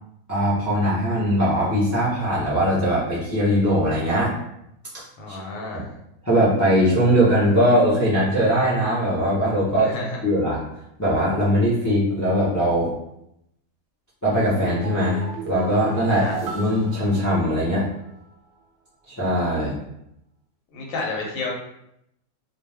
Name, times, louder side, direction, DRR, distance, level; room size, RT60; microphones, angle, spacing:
voice 1, 0.3-4.3 4.9-5.4 5.7-5.8 6.2-10.0 10.2-10.6 11.0-12.9 14.2-17.8 19.1-19.8, equal, 20° left, -8 dB, 0.6 m, -21 dB
voice 2, 5.2-5.9 9.8-10.2 16.1-16.3 20.7-21.5, left 3 dB, 85° left, -1 dB, 1.1 m, -30 dB
sound 1, 14.5-17.9 18.2-18.3, right 4 dB, 65° right, 0.8 m, -35 dB
2.4 x 2.3 x 3.3 m, 0.78 s
omnidirectional pair, 1.4 m